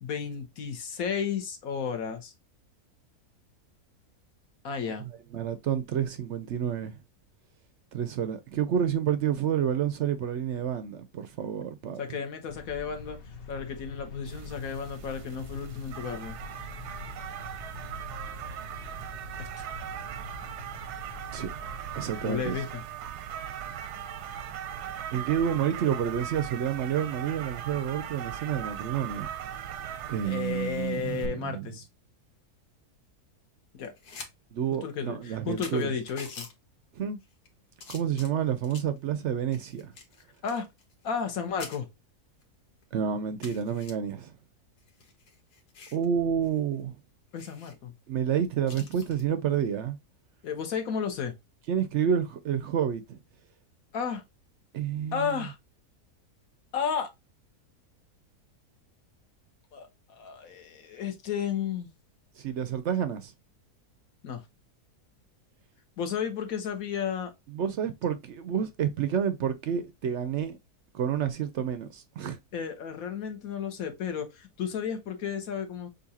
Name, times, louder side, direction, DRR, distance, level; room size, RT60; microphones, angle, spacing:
voice 1, 0.0-2.3 4.6-5.1 12.0-13.2 13.5-16.3 19.4-19.7 22.2-22.8 30.2-31.9 33.7-33.9 34.8-36.5 40.4-40.7 41.0-41.9 47.3-47.9 50.4-51.3 53.9-54.2 55.1-55.6 56.7-57.1 59.7-61.9 64.2-64.4 66.0-67.3 72.5-75.9, left 7 dB, 65° left, 1.3 m, -33 dB
voice 2, 5.3-7.0 7.9-12.0 21.3-21.5 22.0-22.6 25.1-29.3 30.1-31.7 34.5-35.9 37.0-37.2 37.9-39.9 42.9-44.3 45.9-46.9 48.1-50.0 51.7-53.2 54.7-55.4 62.4-63.3 67.5-70.6 70.9-72.4, right 8 dB, 70° right, 0.7 m, -29 dB
sound 1, 12.5-22.6, left 4 dB, 45° left, 0.9 m, -45 dB
sound 2, 14.3-31.3, right 9 dB, 90° right, 1.2 m, -39 dB
sound 3, 33.8-34.3 34.7-34.8 35.3-35.4 35.6-36.5 37.2-37.5 37.8-39.0 39.5-41.3 41.6-41.8 42.4-42.5 42.8-42.9 43.4-43.9 44.8-46.1 46.4-46.6 46.9-47.0 47.4-47.7 48.7-49.2 50.9-51.2, left 4 dB, 85° left, 1.7 m, -46 dB
6.7 x 2.5 x 2.7 m
omnidirectional pair, 1.7 m